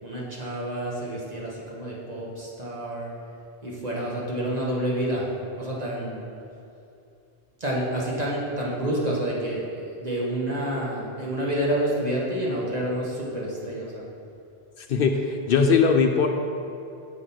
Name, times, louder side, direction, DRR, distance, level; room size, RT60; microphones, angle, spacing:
voice 1, 0.0-3.1 3.6-5.3 5.6-6.3 7.6-14.0, right 1 dB, 40° right, -5 dB, 1.6 m, -28 dB
voice 2, 14.8-16.3, left 5 dB, 65° left, 4 dB, 0.7 m, -20 dB
7.8 x 5.1 x 5.7 m, 2.6 s
omnidirectional pair, 1.1 m